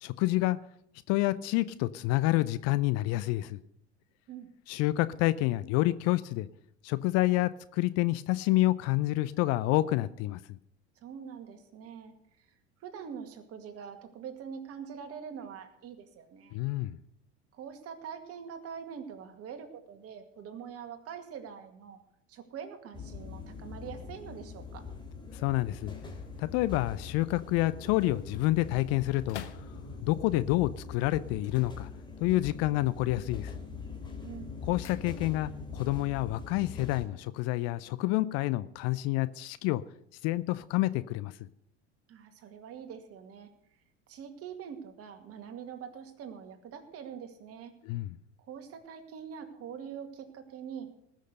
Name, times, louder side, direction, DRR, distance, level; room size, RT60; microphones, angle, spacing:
voice 1, 0.0-0.6 1.1-3.6 4.7-6.5 6.8-10.4 16.5-17.0 25.3-25.9 26.4-29.4 30.0-31.9 32.2-33.5 34.7-39.8 40.2-41.3 47.8-48.2, left 17 dB, 45° left, 0.6 m, -28 dB
voice 2, 11.0-12.5 12.8-16.6 17.5-22.0 22.3-24.8 34.2-34.5 42.1-43.5 44.1-47.7 48.4-50.9, right 7 dB, 40° right, 2.2 m, -44 dB
sound 1, 22.9-37.1, left 4 dB, 15° left, 3.0 m, -43 dB
sound 2, 25.3-30.3 31.3-32.4 32.7-33.2 33.6-35.7 35.9-36.0, left 10 dB, 75° left, 1.0 m, -52 dB
19.0 x 6.5 x 6.7 m
figure-of-eight pair, 75°, 35 cm